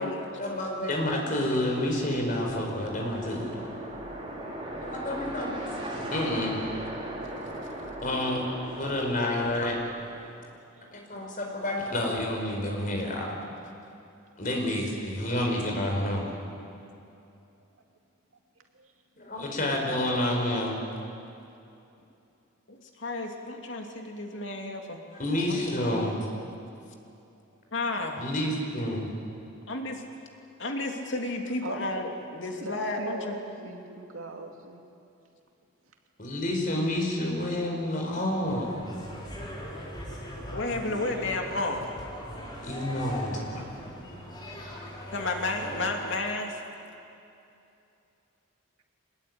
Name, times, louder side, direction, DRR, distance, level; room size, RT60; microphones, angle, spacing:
voice 1, 0.0-3.6 4.8-5.7 6.1-6.6 8.0-8.4 8.8-9.8 10.9-13.3 14.4-16.2 19.2-20.8 25.2-26.3 28.2-29.1 36.2-38.7 42.6-43.6, left 1 dB, 40° left, 1 dB, 4.8 m, -29 dB
sound 1, 1.5-10.5, right 1 dB, 25° right, 4.3 m, -39 dB
voice 2, 22.7-25.0 25.5-26.2 27.7-28.2 29.7-30.0 30.6-33.4 40.5-42.0 45.1-46.6, left 2 dB, 65° left, 2 dB, 2.7 m, -32 dB
voice 3, 31.6-32.1 32.6-34.8, right 2 dB, 90° right, 3 dB, 2.6 m, -39 dB
sound 2, 38.4-45.9, equal, 20° left, 4.5 m, -40 dB
24.0 x 20.5 x 9.6 m, 2.7 s
head